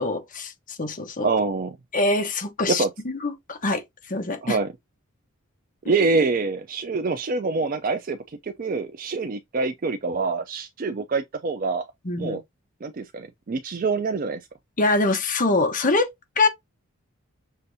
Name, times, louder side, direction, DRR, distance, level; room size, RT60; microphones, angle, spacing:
voice 1, 0.0-1.3 1.9-4.6 12.0-12.4 14.8-16.5, left 2 dB, 40° left, 1.0 m, -24 dB
voice 2, 1.2-1.8 2.7-2.9 4.4-4.7 5.9-11.8 12.2-12.4 12.8-14.4, right 4 dB, 40° right, 0.4 m, -25 dB
6.6 x 2.5 x 2.7 m
head